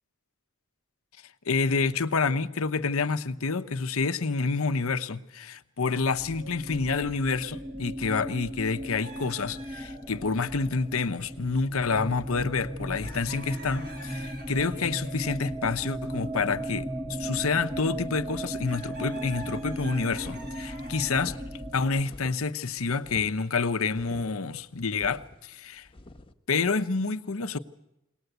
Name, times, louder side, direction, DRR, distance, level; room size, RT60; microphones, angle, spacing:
voice 1, 1.5-21.4 21.7-25.9 26.5-27.6, left 4 dB, 65° left, 0.9 m, -28 dB
sound 1, 6.1-22.0, right 1 dB, 10° right, 1.0 m, -36 dB
sound 2, 9.0-10.3 11.6-11.8 12.1-12.2 12.8-15.2 15.9-16.2 16.6-17.9 18.7-21.4, right 2 dB, 50° right, 4.0 m, -47 dB
sound 3, 19.3-26.3, left 1 dB, 25° left, 1.2 m, -48 dB
22.0 x 19.0 x 8.0 m
head